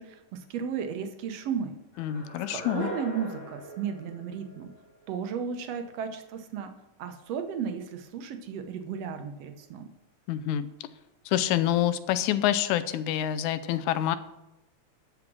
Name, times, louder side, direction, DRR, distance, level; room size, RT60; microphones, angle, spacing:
voice 1, 0.0-1.7 2.5-4.7 5.1-6.7 7.0-9.8, right 7 dB, 65° right, 6 dB, 1.8 m, -34 dB
sound 1, 1.9-5.0, equal, 40° left, 4.2 m, -41 dB
voice 2, 2.0-2.9 10.3-10.7 11.3-14.2, left 12 dB, 80° left, 13 dB, 1.9 m, -27 dB
12.0 x 5.0 x 6.1 m, 0.93 s
omnidirectional pair, 3.5 m